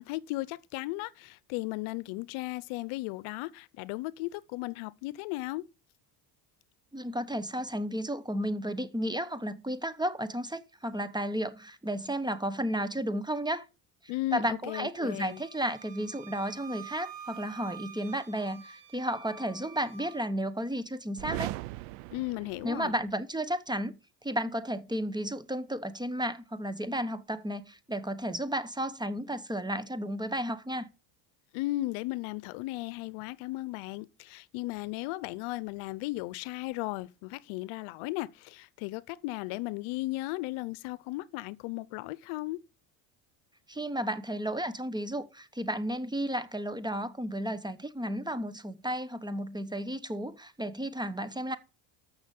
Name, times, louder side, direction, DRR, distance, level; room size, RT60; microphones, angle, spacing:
voice 1, 0.0-5.7 14.1-15.4 22.1-22.9 31.5-42.6, left 19 dB, 75° left, 0.8 m, -36 dB
voice 2, 6.9-13.7 14.3-21.5 22.6-23.9 24.2-30.9 43.7-51.6, equal, 10° right, 0.9 m, -33 dB
Wind instrument woodwind instrument, 15.1-20.3, right 8 dB, 40° right, 3.7 m, -48 dB
sound 1, 21.2-23.2, right 18 dB, 90° right, 0.6 m, -39 dB
13.0 x 6.5 x 5.3 m
supercardioid pair, 95°, 49 cm